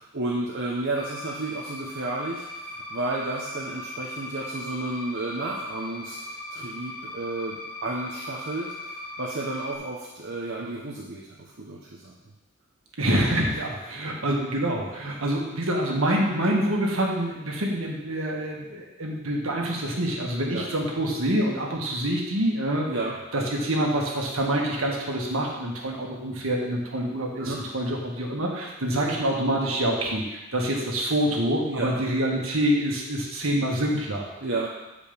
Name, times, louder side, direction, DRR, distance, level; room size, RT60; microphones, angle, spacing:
voice 1, 0.0-8.9 9.2-12.1 13.5-13.6 20.5-20.6 22.9-23.2 27.4-27.6 31.7-32.0 34.4-34.7, right 2 dB, 55° right, -4 dB, 1.0 m, -32 dB
sound 1, 0.9-9.8, left 1 dB, 85° left, 1.9 m, -39 dB
voice 2, 13.0-22.9 23.3-34.3, right 1 dB, 80° right, -1 dB, 1.7 m, -26 dB
8.9 x 5.0 x 5.2 m, 1.0 s
head